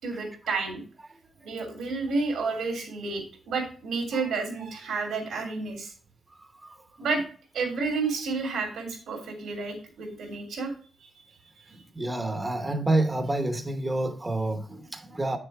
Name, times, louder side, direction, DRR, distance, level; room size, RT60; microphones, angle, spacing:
voice 1, 0.0-0.8 1.4-5.9 7.0-7.2 7.5-10.7 11.0-11.1, right 4 dB, 90° right, 3.0 m, -30 dB
voice 2, 6.4-6.8 11.7-15.4, right 2 dB, 20° right, 1.0 m, -29 dB
8.2 x 6.6 x 3.4 m
cardioid pair, 120°, 0 cm